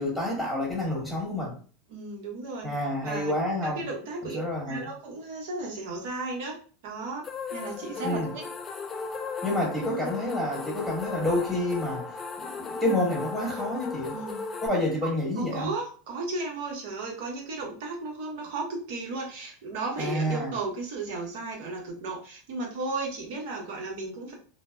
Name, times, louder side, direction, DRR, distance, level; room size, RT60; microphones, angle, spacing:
voice 1, 0.0-1.5 2.6-3.8 4.2-4.9 8.0-8.3 9.4-14.2 14.6-15.7 20.0-20.5, left 1 dB, 10° right, 1.3 m, -29 dB
voice 2, 1.9-2.7 3.0-3.3 3.6-6.6 6.8-8.5 9.8-10.2 14.1-14.5 15.0-24.3, right 3 dB, 65° right, 1.0 m, -35 dB
sound 1, 7.2-14.7, left 4 dB, 30° left, 0.4 m, -36 dB
3.2 x 2.1 x 2.2 m
hypercardioid pair, 95°, 0 cm